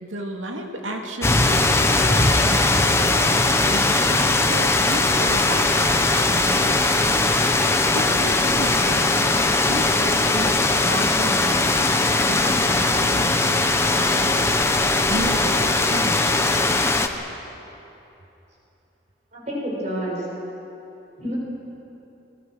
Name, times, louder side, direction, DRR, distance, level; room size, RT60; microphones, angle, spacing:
voice 1, 0.0-6.0 6.3-7.0 7.9-9.3 9.7-11.8 12.3-14.5 15.1-16.8, right 1 dB, 90° right, 2 dB, 2.5 m, -33 dB
sound 1, 1.2-17.1, left 2 dB, 15° left, 0.9 m, -20 dB
voice 2, 19.3-20.2 21.2-21.4, equal, 35° right, -4 dB, 6.9 m, -28 dB
26.0 x 21.0 x 6.4 m, 3.0 s
head